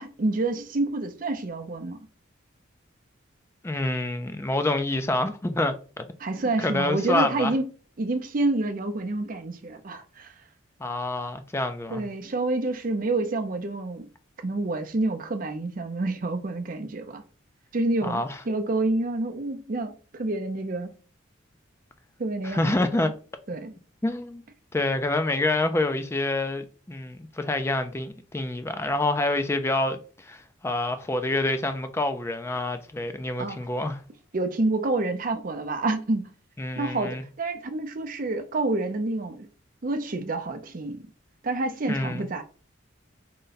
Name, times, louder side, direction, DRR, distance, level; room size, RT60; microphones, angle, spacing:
voice 1, 0.0-2.0 6.2-7.6 8.0-10.3 11.9-14.1 14.4-17.2 17.7-20.9 22.2-23.1 23.5-23.7 33.4-33.6 34.3-36.2 36.8-39.5 39.8-41.1 41.4-42.4, right 2 dB, 40° right, 0.5 m, -28 dB
voice 2, 3.6-6.1 6.6-7.5 10.8-12.1 18.0-18.4 22.4-23.1 24.0-24.4 24.7-34.0 36.6-37.2 41.9-42.2, left 2 dB, 15° left, 0.3 m, -27 dB
3.8 x 2.2 x 3.9 m
head